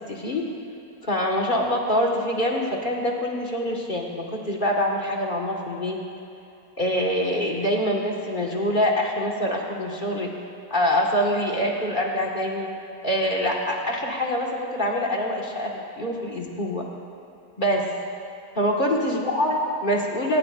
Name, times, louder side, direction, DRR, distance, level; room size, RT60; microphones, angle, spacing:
voice 1, 0.1-0.4 1.0-6.0 6.8-10.3 10.7-12.7 13.0-15.7 16.0-16.8 17.6-17.9 18.6-20.4, equal, 35° left, -2 dB, 1.9 m, -25 dB
22.5 x 19.5 x 2.6 m, 2.8 s
omnidirectional pair, 1.6 m